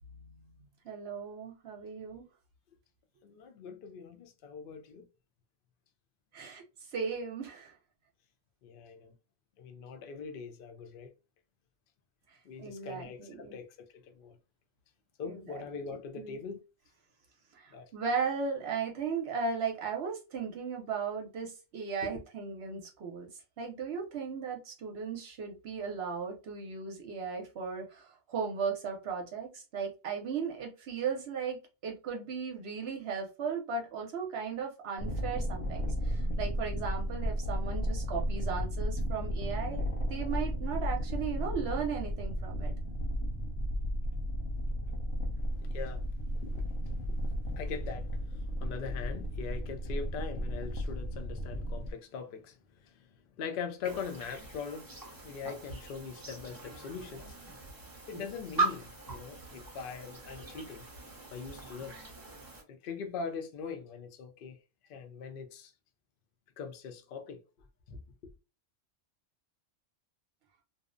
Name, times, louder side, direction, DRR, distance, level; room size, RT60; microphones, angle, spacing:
voice 1, 0.8-2.2 6.3-6.6 6.9-7.7 12.6-13.5 15.2-15.4 16.2-16.4 17.5-23.3 23.6-42.7, right 5 dB, 60° right, 0.8 m, -36 dB
voice 2, 3.2-5.1 8.6-9.1 9.6-11.1 12.4-13.7 13.9-14.4 15.2-16.6 17.7-17.9 22.0-22.2 45.4-46.7 47.1-53.1 53.4-54.9 55.2-57.4 58.1-60.8 61.3-62.0 62.7-64.6 64.9-65.7 66.6-67.4 67.9-68.0, left 6 dB, 60° left, 0.6 m, -42 dB
sound 1, 35.0-51.9, equal, 80° left, 1.0 m, -34 dB
sound 2, 53.8-62.6, right 3 dB, 25° right, 0.4 m, -40 dB
2.6 x 2.0 x 2.4 m
omnidirectional pair, 1.3 m